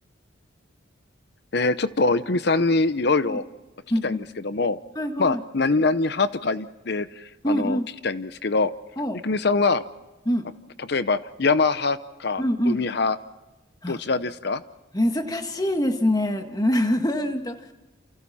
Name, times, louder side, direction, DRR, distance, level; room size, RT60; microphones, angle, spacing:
voice 1, 1.5-3.4 4.0-4.2 4.4-4.8 5.2-8.7 9.2-9.8 10.8-13.2 13.9-14.6, left 3 dB, 55° left, 13 dB, 0.8 m, -23 dB
voice 2, 3.9-4.2 4.9-5.4 7.4-7.9 9.0-9.2 10.2-10.5 12.4-12.8 13.8-14.0 14.9-17.6, left 1 dB, 20° left, 6 dB, 1.7 m, -24 dB
29.0 x 28.5 x 4.3 m, 1.1 s
head